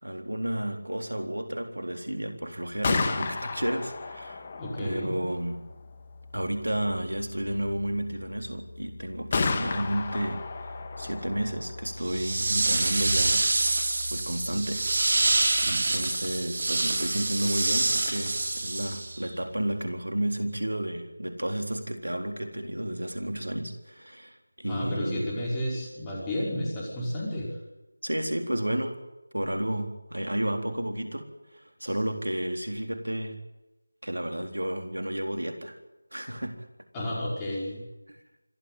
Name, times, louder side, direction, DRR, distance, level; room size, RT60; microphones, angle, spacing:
voice 1, 0.0-4.4 4.8-5.6 6.3-10.7 11.0-13.5 14.1-14.9 15.6-25.3 28.0-29.0 29.3-33.4 34.0-35.8 36.1-36.7 38.1-38.2, right 1 dB, 90° right, 6 dB, 4.0 m, -32 dB
Gunshot gunfire, 2.6-16.4, left 4 dB, 25° left, 1.9 m, -35 dB
voice 2, 4.6-5.2 24.7-27.5 36.9-37.8, left 1 dB, 10° left, -4 dB, 5.3 m, -31 dB
sound 1, 12.0-19.3, right 2 dB, 45° right, 4.0 m, -26 dB
26.0 x 13.0 x 9.3 m, 1.0 s
figure-of-eight pair, 170°, 0 cm